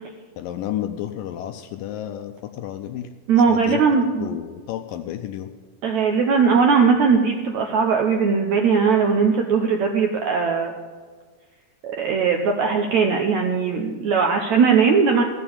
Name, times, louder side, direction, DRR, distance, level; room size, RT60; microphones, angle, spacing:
voice 1, 0.4-3.1 3.5-5.5, left 11 dB, 80° left, 7 dB, 2.1 m, -31 dB
voice 2, 3.3-4.3 5.8-10.7 11.8-15.2, right 5 dB, 75° right, 2 dB, 1.7 m, -19 dB
14.5 x 6.9 x 8.6 m, 1.5 s
omnidirectional pair, 4.4 m